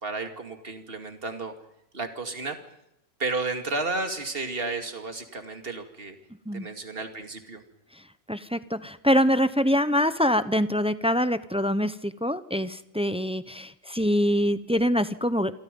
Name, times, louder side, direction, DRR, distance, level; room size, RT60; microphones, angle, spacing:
voice 1, 0.0-1.5 1.9-2.6 3.2-6.2 6.5-7.6, right 3 dB, 45° right, 6 dB, 2.6 m, -32 dB
voice 2, 8.3-15.5, equal, 5° right, 13 dB, 0.5 m, -24 dB
27.5 x 24.0 x 5.4 m, 0.79 s
omnidirectional pair, 1.4 m